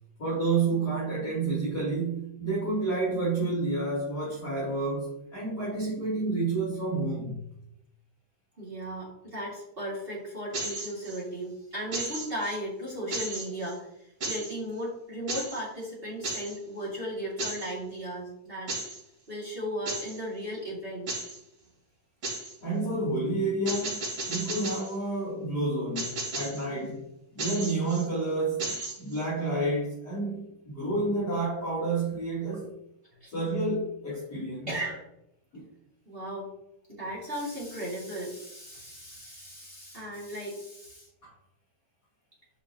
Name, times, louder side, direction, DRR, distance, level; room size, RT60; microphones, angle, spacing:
voice 1, 0.2-7.4 22.6-27.1 27.3-32.7 33.3-34.7 35.5-35.6 41.2-41.3, right 2 dB, 30° left, -10 dB, 3.0 m, -30 dB
voice 2, 8.6-18.7 19.3-21.1 33.2-33.3 34.7-35.1 36.1-36.5 36.9-41.1, equal, 20° right, -5 dB, 1.7 m, -36 dB
sound 1, 10.5-11.2 11.9-12.6 13.1-13.7 14.2-14.5 15.3-15.6 16.2-16.6 17.4-17.7 18.7-19.0 19.9-20.2 21.1-21.4 22.2-22.5 23.7-24.9 26.0-26.6 27.4-28.1 28.6-29.2, right 2 dB, 45° right, 3.7 m, -34 dB
9.5 x 5.7 x 2.9 m, 0.82 s
omnidirectional pair, 3.8 m